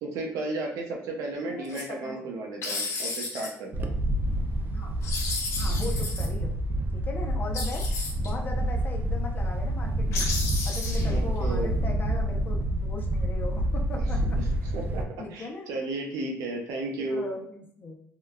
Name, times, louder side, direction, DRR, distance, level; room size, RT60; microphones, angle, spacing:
voice 1, 0.0-3.9 11.1-11.8 14.4-17.2, right 2 dB, 85° right, 1 dB, 0.7 m, -34 dB
voice 2, 1.5-2.3 4.7-5.0 5.6-6.6 6.9-10.3 10.6-14.4 15.2-15.7 17.0-18.0, left 3 dB, 35° left, 1 dB, 0.6 m, -39 dB
sound 1, 1.6-1.8 2.6-3.5 5.0-6.3 7.5-8.3 10.1-11.2, left 3 dB, 65° left, 0.8 m, -33 dB
Wind, 3.7-15.0, right 1 dB, 40° right, 0.3 m, -28 dB
3.8 x 2.2 x 2.2 m, 0.68 s
cardioid pair, 120°, 5 cm